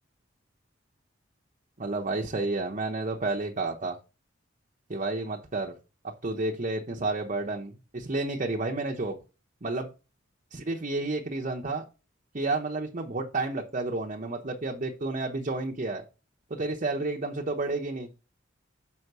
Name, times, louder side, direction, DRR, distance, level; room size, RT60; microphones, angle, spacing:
voice 1, 1.8-4.0 4.9-5.7 6.2-9.2 9.6-9.9 10.5-11.8 12.3-16.0 16.5-18.1, right 2 dB, 40° right, 1 dB, 0.9 m, -31 dB
6.7 x 5.0 x 4.7 m, 0.30 s
head